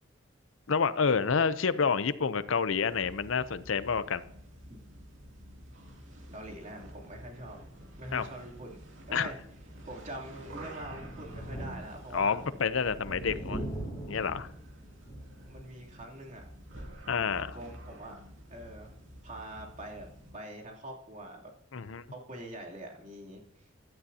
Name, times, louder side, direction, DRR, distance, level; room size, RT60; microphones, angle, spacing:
voice 1, 0.7-4.2 8.1-8.3 9.1-9.3 12.1-13.6 14.1-14.5 17.1-17.6 21.7-22.0, left 5 dB, 80° left, 14 dB, 0.7 m, -28 dB
sound 1, 2.8-20.5, equal, 70° right, 2.7 m, -50 dB
voice 2, 6.3-7.6 8.0-9.4 9.9-12.4 13.1-13.7 15.5-16.5 17.5-18.2 18.5-19.0 19.2-21.5 22.1-23.7, right 1 dB, 40° right, 0 dB, 3.0 m, -44 dB
Thunder, 10.7-15.8 16.2-16.3 17.6-17.7, right 1 dB, 20° left, 6.1 m, -41 dB
16.5 x 12.5 x 2.8 m, 0.71 s
head